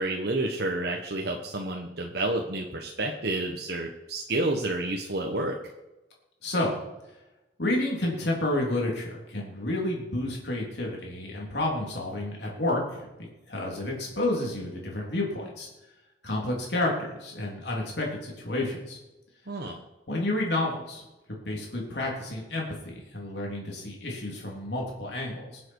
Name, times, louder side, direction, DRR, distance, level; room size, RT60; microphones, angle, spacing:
voice 1, 0.0-5.6 19.5-19.8, right 2 dB, 65° right, 1 dB, 1.3 m, -30 dB
voice 2, 6.4-6.7 7.6-13.1 13.5-15.7 16.2-19.0 20.1-21.0 21.3-25.6, left 1 dB, 75° left, -2 dB, 3.5 m, -30 dB
21.5 x 7.7 x 4.8 m, 1.0 s
head